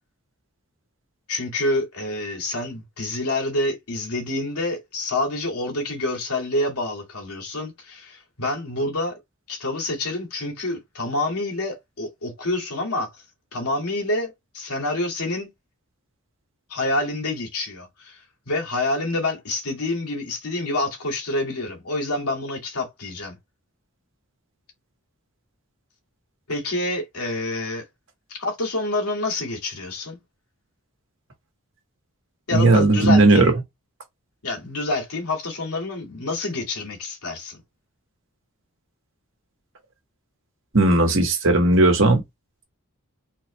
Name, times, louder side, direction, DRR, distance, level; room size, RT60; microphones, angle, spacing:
voice 1, 1.3-9.2 9.5-13.1 13.5-15.5 16.7-18.2 18.5-23.4 26.5-27.8 28.3-30.2 32.5-33.5 34.4-37.6, left 2 dB, 85° left, 2.1 m, -27 dB
voice 2, 32.5-33.5 40.7-42.2, right 2 dB, 60° right, 1.5 m, -16 dB
4.1 x 3.3 x 3.1 m
head